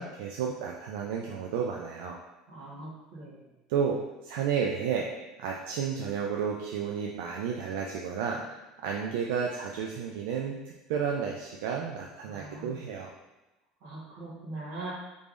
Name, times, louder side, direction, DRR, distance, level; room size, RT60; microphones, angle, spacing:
voice 1, 0.0-2.2 3.7-4.0 4.2-5.1 5.4-8.4 8.8-10.6 10.9-13.1, right 7 dB, 85° right, 0 dB, 0.3 m, -31 dB
voice 2, 2.5-3.4 12.2-12.8 13.8-14.9, right 2 dB, 65° right, -6 dB, 1.3 m, -41 dB
3.5 x 3.3 x 2.5 m, 1.0 s
cardioid pair, 165°, 0 cm